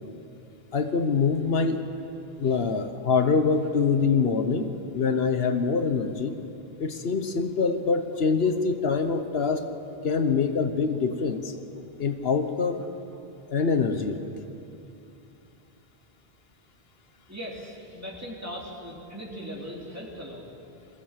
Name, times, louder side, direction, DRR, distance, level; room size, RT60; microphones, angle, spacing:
voice 1, 0.7-1.8 2.4-6.4 6.8-9.6 10.0-11.6 12.0-12.9 13.5-14.2, left 5 dB, 75° left, 8 dB, 1.2 m, -25 dB
voice 2, 17.3-20.4, equal, 15° right, -3 dB, 3.2 m, -39 dB
22.5 x 15.5 x 7.4 m, 2.7 s
omnidirectional pair, 1.0 m